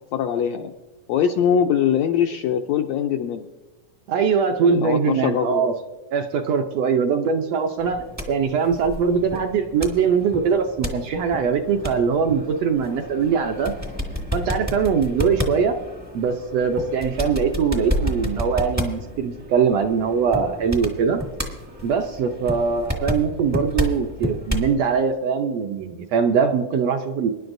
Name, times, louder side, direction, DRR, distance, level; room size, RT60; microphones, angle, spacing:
voice 1, 0.1-0.7 1.1-3.5 4.7-5.7, left 8 dB, 80° left, 5 dB, 1.5 m, -22 dB
voice 2, 4.1-5.7 6.1-13.7 14.3-15.8 16.1-21.2 21.8-27.3, right 6 dB, 75° right, 5 dB, 1.5 m, -22 dB
sound 1, 7.8-24.8, equal, 20° right, 0.5 m, -31 dB
24.0 x 11.0 x 2.6 m, 1.1 s
omnidirectional pair, 3.6 m